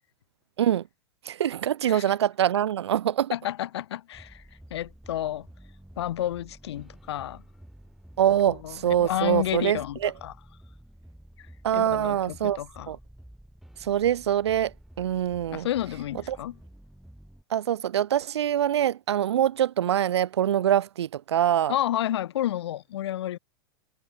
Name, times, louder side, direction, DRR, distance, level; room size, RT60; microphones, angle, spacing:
voice 1, 1.2-3.3 8.2-10.1 11.6-12.6 12.9-13.0 13.8-15.7 16.3-16.4 17.5-21.7, right 10 dB, 85° right, 0.6 m, -24 dB
voice 2, 3.3-4.4 4.7-5.5 6.0-7.4 8.5-10.3 11.4-11.5 11.7-12.9 15.5-16.6 21.7-23.4, left 12 dB, 80° left, 0.5 m, -31 dB
sound 1, 4.1-17.4, right 1 dB, ahead, 5.6 m, -50 dB
hypercardioid pair, 120°, 14 cm